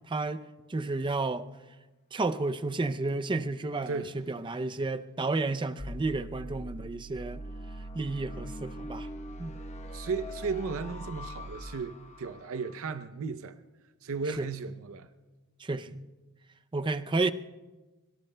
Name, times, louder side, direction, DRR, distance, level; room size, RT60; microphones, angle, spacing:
voice 1, 0.1-0.4 0.7-1.5 2.1-7.4 7.9-9.1 9.4-9.6 14.4-14.5 15.6-16.1 16.7-17.3, right 3 dB, 20° right, 0.5 m, -31 dB
sound 1, 5.8-12.7, right 1 dB, 30° left, 0.9 m, -42 dB
voice 2, 9.9-13.6 14.0-15.1, right 4 dB, 65° right, 0.6 m, -35 dB
25.5 x 24.5 x 2.2 m
head